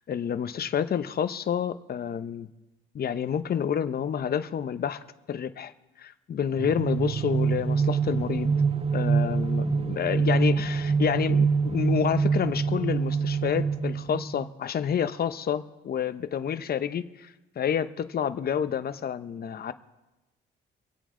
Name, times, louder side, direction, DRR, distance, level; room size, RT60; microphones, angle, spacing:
voice 1, 0.1-2.5 2.9-5.0 5.3-5.7 6.0-8.5 8.9-19.7, left 8 dB, 50° left, 12 dB, 0.8 m, -29 dB
sound 1, 6.6-14.5, right 5 dB, 30° right, 0.5 m, -25 dB
25.0 x 8.4 x 3.8 m, 1.0 s
cardioid pair, 90°, 20 cm